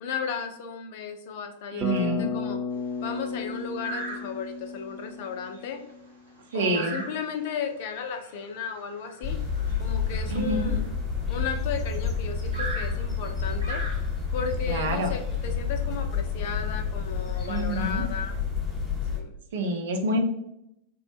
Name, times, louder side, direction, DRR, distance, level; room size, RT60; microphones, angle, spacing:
voice 1, 0.0-2.6 3.0-5.8 6.5-9.4 9.8-10.8 11.3-13.8 14.3-18.3 19.1-19.3, left 6 dB, 50° left, 6 dB, 0.4 m, -34 dB
voice 2, 1.7-2.3 6.5-7.0 10.3-10.7 14.7-15.1 17.5-18.0 19.5-20.2, right 2 dB, 60° right, 4 dB, 0.5 m, -27 dB
Bass guitar, 1.8-5.9, left 5 dB, 15° right, 0.8 m, -33 dB
sound 1, 2.7-3.1 3.8-4.6 5.1-5.2 5.5-11.8 12.5-14.4 15.4-15.5 15.9-16.0 16.6-16.8 17.2-18.4, right 2 dB, 85° right, 1.0 m, -40 dB
sound 2, 9.2-19.2, left 6 dB, 10° left, 1.1 m, -29 dB
3.3 x 2.0 x 3.2 m, 0.77 s
figure-of-eight pair, 90°, 0 cm